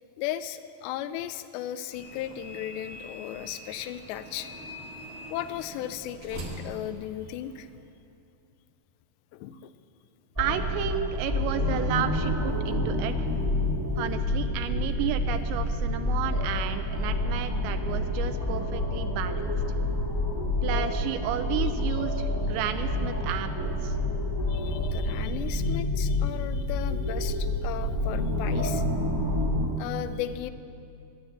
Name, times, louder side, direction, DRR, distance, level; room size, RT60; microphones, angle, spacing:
voice 1, 0.2-4.5 5.3-7.7 9.3-9.7 19.1-19.2 24.5-28.8 29.8-30.5, left 12 dB, 85° left, 12 dB, 2.6 m, -36 dB
sound 1, 1.9-7.8, equal, 55° right, 1.8 m, -43 dB
sound 2, 10.3-29.7, left 1 dB, 15° right, 0.8 m, -28 dB
voice 2, 10.4-13.1 14.0-19.5 20.6-24.0, right 10 dB, 85° right, 9 dB, 2.8 m, -32 dB
11.5 x 10.5 x 8.6 m, 2.6 s
omnidirectional pair, 5.1 m